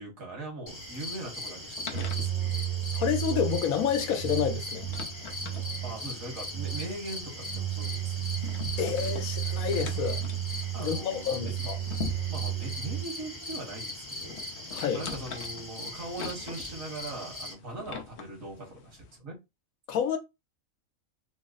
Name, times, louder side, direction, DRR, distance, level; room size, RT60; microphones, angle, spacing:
voice 1, 0.0-2.6 5.8-8.3 10.7-11.7 12.3-14.4 14.9-19.4, right 2 dB, 70° right, 1.9 m, -40 dB
sound 1, 0.7-17.5, left 2 dB, 25° left, 0.9 m, -40 dB
sound 2, 0.9-19.2, left 6 dB, 60° left, 0.9 m, -45 dB
sound 3, 1.9-13.0, right 12 dB, 45° right, 0.5 m, -33 dB
voice 2, 2.9-4.8 8.8-10.2 10.8-11.8 14.7-15.0 19.9-20.2, left 8 dB, 85° left, 1.2 m, -29 dB
3.9 x 2.0 x 3.8 m
omnidirectional pair, 1.5 m